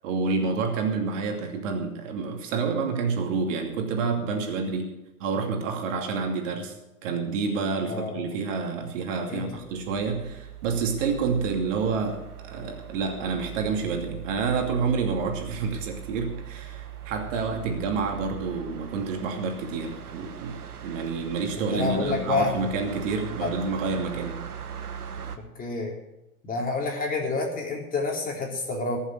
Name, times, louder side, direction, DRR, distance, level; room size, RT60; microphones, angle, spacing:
voice 1, 0.0-6.7 7.0-24.4, right 4 dB, 55° right, 3 dB, 2.7 m, -28 dB
voice 2, 7.9-8.2 9.3-9.5 21.7-22.5 23.4-23.5 25.6-25.9 26.4-29.0, left 3 dB, 20° left, 0 dB, 3.9 m, -28 dB
sound 1, 9.4-25.4, right 10 dB, 85° right, 1.5 m, -41 dB
20.0 x 7.3 x 6.6 m, 0.96 s
hypercardioid pair, 110°, 44 cm